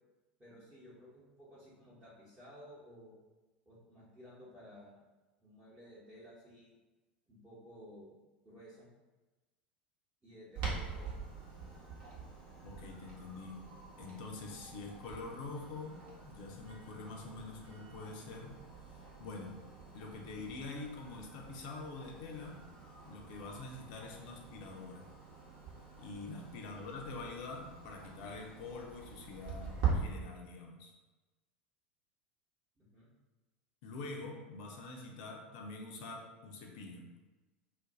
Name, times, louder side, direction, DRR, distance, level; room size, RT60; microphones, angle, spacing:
voice 1, 0.4-3.2 3.7-5.0 5.4-6.7 7.3-8.1 8.4-8.9 10.2-11.1 26.3-26.6 32.8-33.1, equal, 20° right, -9 dB, 0.9 m, -55 dB
Clock, 10.5-29.9, right 6 dB, 50° right, 0.9 m, -44 dB
voice 2, 12.6-13.6 14.0-18.5 18.9-19.6 19.9-22.6 23.1-25.1 26.0-30.9 33.8-37.1, left 3 dB, 50° left, 0 dB, 0.5 m, -46 dB
2.4 x 2.1 x 3.9 m, 1.2 s
figure-of-eight pair, 80°, 6 cm